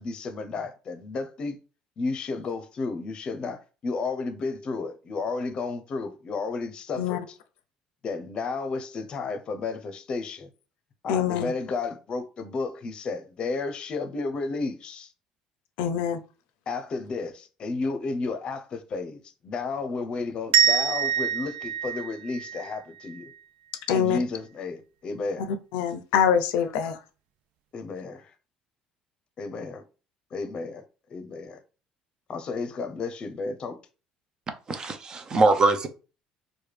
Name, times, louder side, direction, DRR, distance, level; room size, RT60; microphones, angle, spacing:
voice 1, 0.0-1.6 2.0-7.2 8.0-10.5 11.0-15.1 16.7-23.3 23.9-25.5 27.7-28.3 29.4-29.8 30.3-30.8 31.1-31.6 32.3-33.8, left 4 dB, 45° left, 0.6 m, -32 dB
voice 2, 11.1-11.5 15.8-16.2 23.9-24.2 25.5-27.0, left 8 dB, 90° left, 0.5 m, -24 dB
sound 1, 20.5-23.3, right 8 dB, 80° right, 0.3 m, -25 dB
voice 3, 34.7-35.9, right 3 dB, 35° right, 0.6 m, -22 dB
4.6 x 2.2 x 3.3 m
cardioid pair, 110°, 2 cm